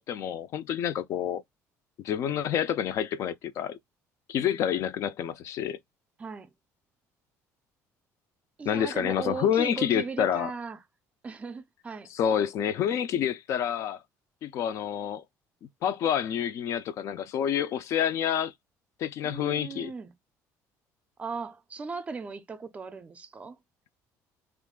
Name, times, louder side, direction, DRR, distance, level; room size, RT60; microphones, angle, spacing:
voice 1, 0.0-1.4 2.0-3.8 4.3-5.8 8.7-10.5 12.1-14.0 14.4-15.2 15.8-18.5 19.0-19.9, left 9 dB, 50° left, 0.3 m, -28 dB
voice 2, 4.4-4.8 6.2-6.5 8.6-10.8 11.2-12.1 19.2-20.1 21.2-23.6, right 5 dB, 20° right, 0.4 m, -38 dB
3.0 x 2.4 x 3.5 m
cardioid pair, 155°, 6 cm